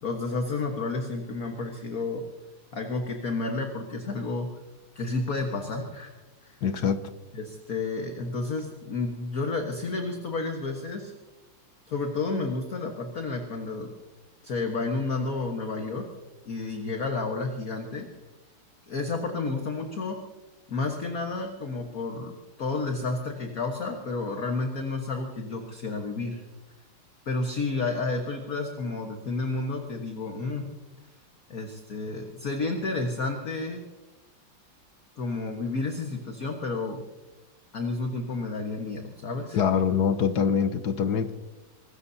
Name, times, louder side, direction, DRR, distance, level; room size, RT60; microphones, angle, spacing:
voice 1, 0.0-2.2 2.7-4.5 4.9-6.1 6.4-6.6 7.3-11.1 11.9-13.9 14.4-16.1 16.5-18.1 18.9-20.2 20.7-26.4 27.3-30.7 31.5-33.8 35.2-37.0 37.7-39.6, left 3 dB, 45° left, 3 dB, 1.7 m, -31 dB
voice 2, 6.6-7.0 39.5-41.3, left 7 dB, 65° left, 10 dB, 1.1 m, -24 dB
24.5 x 19.5 x 2.8 m, 1.1 s
omnidirectional pair, 2.4 m